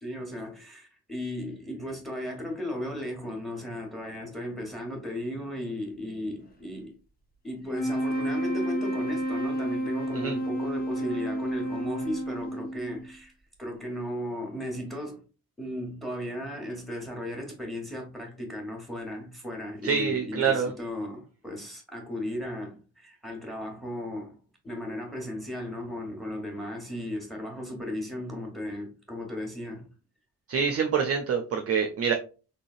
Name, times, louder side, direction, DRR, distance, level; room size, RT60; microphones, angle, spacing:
voice 1, 0.0-6.9 7.4-13.3 13.6-15.2 15.6-24.4 24.6-29.9, left 1 dB, ahead, 1.4 m, -36 dB
sound 1, 7.6-13.1, right 1 dB, 20° left, 1.0 m, -30 dB
voice 2, 19.8-20.7 30.5-32.1, right 6 dB, 30° right, 0.6 m, -26 dB
3.8 x 3.4 x 2.5 m
figure-of-eight pair, 40°, 49 cm